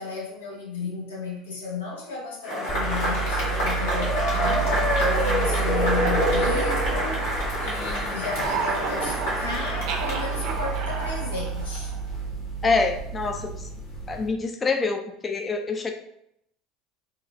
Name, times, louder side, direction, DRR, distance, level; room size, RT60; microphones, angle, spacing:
voice 1, 0.0-4.7 5.0-7.3 7.6-11.9, left 4 dB, 90° left, 1.0 m, -33 dB
Cheering / Applause / Crowd, 2.4-11.1, equal, 75° left, 1.5 m, -27 dB
sound 1, 2.7-14.3, right 5 dB, 50° left, 1.2 m, -31 dB
sound 2, 4.3-7.8 8.1-12.1, right 5 dB, 65° right, 0.7 m, -33 dB
voice 2, 12.6-13.7 14.1-15.9, left 4 dB, 25° left, 0.4 m, -26 dB
3.8 x 2.3 x 3.3 m
hypercardioid pair, 85°, 0 cm